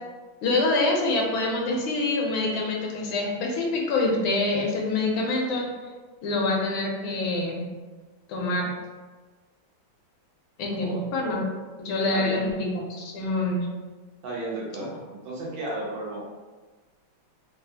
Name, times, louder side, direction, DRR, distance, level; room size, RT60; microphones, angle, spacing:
voice 1, 0.4-5.7 6.2-7.6 8.3-8.7 10.6-11.4 11.8-13.7, left 2 dB, 80° left, 0 dB, 1.5 m, -26 dB
voice 2, 14.2-16.2, right 2 dB, 75° right, -4 dB, 1.5 m, -33 dB
3.9 x 2.3 x 2.7 m, 1.3 s
omnidirectional pair, 2.2 m